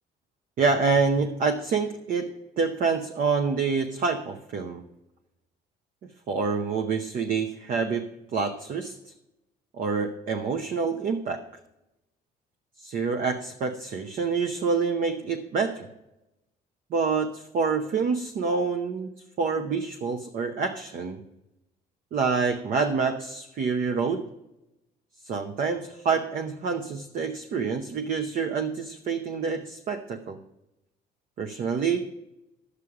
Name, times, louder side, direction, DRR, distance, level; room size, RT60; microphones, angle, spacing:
voice 1, 0.6-4.8 6.3-9.0 9.8-11.5 12.8-15.9 16.9-21.3 22.1-24.3 25.2-30.4 31.4-32.1, right 5 dB, 55° right, 6 dB, 0.8 m, -27 dB
11.0 x 8.3 x 4.8 m, 0.93 s
cardioid pair, 110°, 17 cm